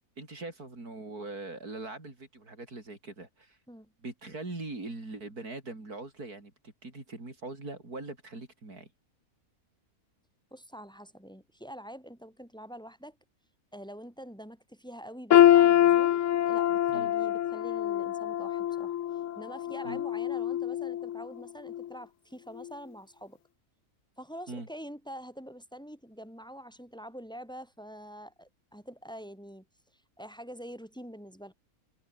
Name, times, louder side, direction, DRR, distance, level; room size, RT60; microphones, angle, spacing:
voice 1, 0.2-3.6 4.0-8.9 16.9-17.1 19.8-20.0 24.5-24.7, right 2 dB, 90° right, 5.6 m, -41 dB
voice 2, 10.5-13.2 13.7-19.0 19.4-23.4 24.2-29.7 29.9-31.5, equal, 5° left, 7.2 m, -45 dB
sound 1, 15.3-21.3 21.7-21.9 22.6-22.7, left 11 dB, 65° left, 1.0 m, -24 dB
omnidirectional pair, 1.6 m